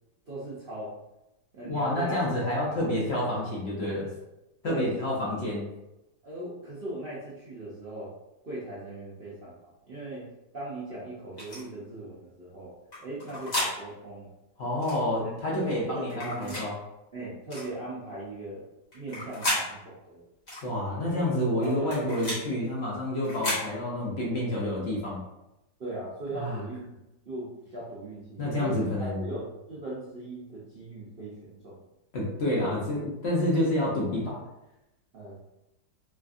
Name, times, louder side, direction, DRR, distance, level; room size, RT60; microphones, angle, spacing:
voice 1, 0.3-0.9 1.5-2.2 2.6-3.1 4.6-4.9 6.2-8.1 8.4-10.3 10.5-12.7 13.0-14.3 15.2-16.6 17.1-18.7 18.9-20.2 21.1-21.9 25.8-26.9 27.3-28.9 29.2-31.8 35.1-35.4, right 1 dB, 55° right, -9 dB, 0.6 m, -39 dB
voice 2, 1.6-4.1 4.6-5.7 14.6-16.7 20.6-25.2 26.3-26.6 28.4-29.3 32.1-34.4, left 1 dB, 60° left, -4 dB, 0.7 m, -28 dB
sound 1, 11.4-11.6 12.9-13.7 14.8-15.0 16.1-16.7 17.5-17.7 18.9-19.6 20.5-20.7 21.6-22.4 23.2-23.6, left 1 dB, 30° left, 1.0 m, -32 dB
3.3 x 2.5 x 2.4 m, 0.92 s
omnidirectional pair, 1.8 m